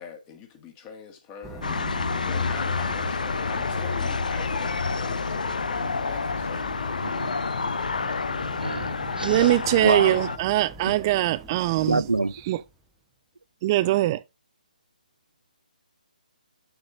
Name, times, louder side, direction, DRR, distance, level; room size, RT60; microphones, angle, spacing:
voice 1, 0.0-7.2 9.3-9.9, left 6 dB, 20° left, 1.8 m, -43 dB
sound 1, 1.4-12.8, right 3 dB, 5° right, 0.8 m, -44 dB
sound 2, 1.6-10.4, left 4 dB, 65° left, 0.7 m, -28 dB
voice 2, 8.6-9.5 9.8-10.1 10.9-11.0 11.9-12.3, right 3 dB, 85° right, 0.4 m, -26 dB
voice 3, 9.2-12.1 12.5-12.6 13.6-14.2, right 15 dB, 25° right, 0.5 m, -22 dB
6.8 x 6.8 x 3.6 m
figure-of-eight pair, 145°, 5 cm